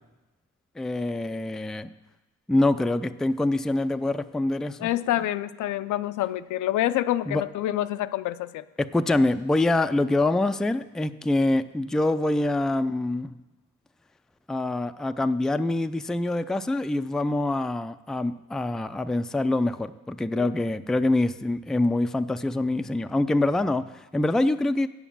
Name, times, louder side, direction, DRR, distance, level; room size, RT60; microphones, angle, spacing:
voice 1, 0.8-1.9 2.5-4.9 7.3-7.4 8.8-13.3 14.5-23.8 24.1-24.9, left 2 dB, ahead, 10 dB, 0.3 m, -25 dB
voice 2, 4.8-8.6 20.4-20.5, left 13 dB, 75° left, 13 dB, 0.5 m, -27 dB
8.3 x 7.1 x 7.1 m, 1.1 s
cardioid pair, 85°, 30 cm